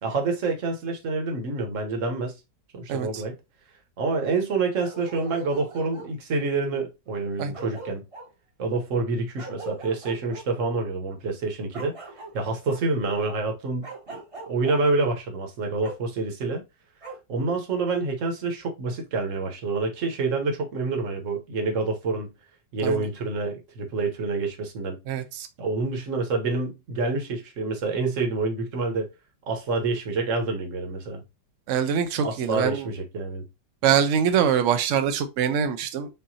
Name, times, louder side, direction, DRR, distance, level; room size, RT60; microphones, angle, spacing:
voice 1, 0.0-2.3 2.7-3.3 4.0-8.0 8.6-12.0 12.3-13.9 14.5-16.6 17.3-22.3 22.7-25.0 25.6-29.1 29.5-31.2 32.2-33.4, right 3 dB, 50° right, 1.2 m, -27 dB
voice 2, 2.9-3.2 7.4-7.5 22.8-23.0 25.1-25.5 31.7-32.9 33.8-36.1, right 8 dB, 90° right, 0.6 m, -24 dB
Bark, 4.8-6.1 7.2-7.3 7.5-8.3 9.4-10.4 11.7-12.8 13.8-14.8 15.8-16.0 17.0-17.2, right 1 dB, 25° right, 0.8 m, -40 dB
5.5 x 2.6 x 2.7 m
omnidirectional pair, 1.9 m